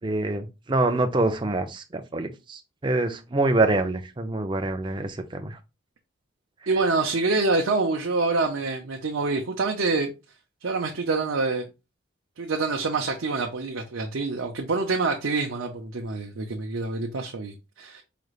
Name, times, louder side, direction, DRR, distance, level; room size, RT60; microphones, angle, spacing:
voice 1, 0.0-5.6, right 2 dB, 25° right, 0.5 m, -25 dB
voice 2, 6.7-10.1 10.6-11.7 12.4-18.0, right 3 dB, 70° right, 0.6 m, -26 dB
4.9 x 3.2 x 2.4 m
head